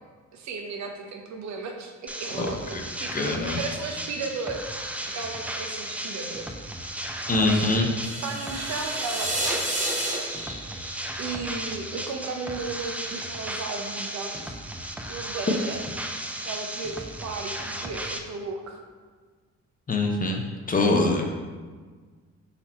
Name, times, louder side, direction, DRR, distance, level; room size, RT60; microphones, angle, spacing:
voice 1, 0.3-6.5 7.4-7.9 8.2-9.7 11.2-14.6 15.1-15.9 16.5-18.8, right 4 dB, 65° right, 3 dB, 0.7 m, -35 dB
sound 1, 2.1-18.2, right 1 dB, 5° right, 0.3 m, -35 dB
voice 2, 3.1-3.6 7.3-7.9 19.9-21.3, left 2 dB, 30° left, 2 dB, 0.6 m, -24 dB
sound 2, 8.0-12.1, right 1 dB, 25° right, 0.9 m, -31 dB
4.1 x 2.8 x 4.3 m, 1.5 s
cardioid pair, 90°, 30 cm